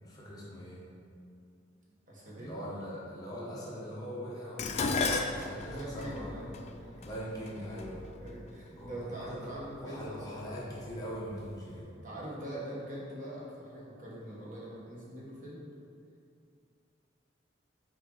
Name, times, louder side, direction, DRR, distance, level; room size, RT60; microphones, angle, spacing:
voice 1, 0.0-0.8 2.3-6.4 7.0-8.0 8.7-11.9, equal, 20° left, -7 dB, 1.1 m, -42 dB
voice 2, 2.1-2.6 5.7-7.1 8.2-10.7 12.0-15.6, right 1 dB, 40° right, -6 dB, 1.4 m, -43 dB
Dishes pots and pans, 4.6-9.0 9.8-10.2 10.6-11.5 11.7-11.8, left 3 dB, 35° left, 0.3 m, -35 dB
6.2 x 4.6 x 3.9 m, 2.4 s
head